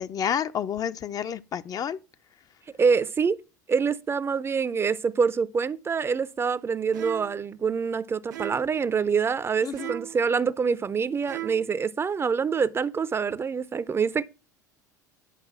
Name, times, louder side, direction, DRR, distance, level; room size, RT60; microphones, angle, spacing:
voice 1, 0.0-2.0 9.6-9.9, left 8 dB, 40° left, 0.6 m, -30 dB
voice 2, 2.8-3.4 3.7-14.2, right 5 dB, 25° right, 0.6 m, -26 dB
sound 1, 6.9-7.4 8.3-8.8 9.8-10.3 11.2-11.8, right 15 dB, 75° right, 0.7 m, -37 dB
10.0 x 5.3 x 6.0 m
hypercardioid pair, 75°, 10 cm